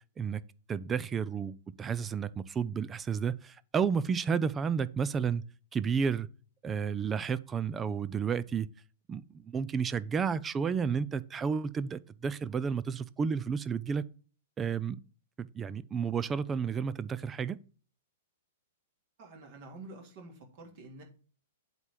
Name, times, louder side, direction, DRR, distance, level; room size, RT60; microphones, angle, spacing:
voice 1, 0.7-5.4 5.7-6.3 6.6-8.7 9.1-14.0 14.6-15.0 15.4-17.6, right 6 dB, 20° right, 0.5 m, -31 dB
voice 2, 19.2-21.0, right 2 dB, 45° right, 2.9 m, -48 dB
8.0 x 4.3 x 6.9 m
figure-of-eight pair, 105°, 0 cm